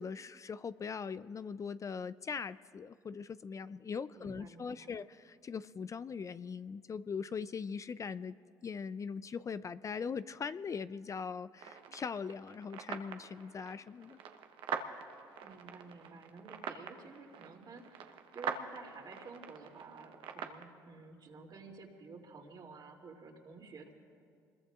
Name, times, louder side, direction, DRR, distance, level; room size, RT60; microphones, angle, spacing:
voice 1, 0.0-8.4 8.6-14.2, left 6 dB, 35° left, 14 dB, 0.4 m, -41 dB
voice 2, 4.1-4.9 15.4-23.9, right 4 dB, 50° right, 1 dB, 2.7 m, -52 dB
sound 1, 11.6-20.6, right 7 dB, 70° right, 1.1 m, -44 dB
26.5 x 21.5 x 2.5 m, 2.2 s
hypercardioid pair, 60°, 9 cm